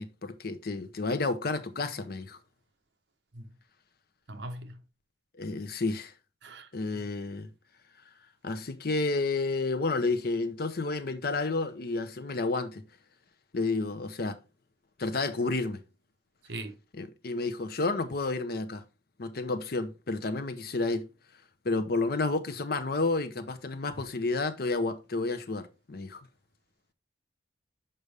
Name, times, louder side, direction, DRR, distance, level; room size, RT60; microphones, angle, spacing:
voice 1, 0.0-2.4 5.4-6.1 6.7-7.5 8.4-12.8 13.5-14.4 15.0-15.8 16.9-18.8 19.2-21.0 21.6-26.2, left 3 dB, 55° left, 0.7 m, -30 dB
voice 2, 4.3-4.8 6.4-6.7 16.5-16.8, right 1 dB, 70° right, 0.9 m, -40 dB
6.7 x 5.2 x 3.4 m
head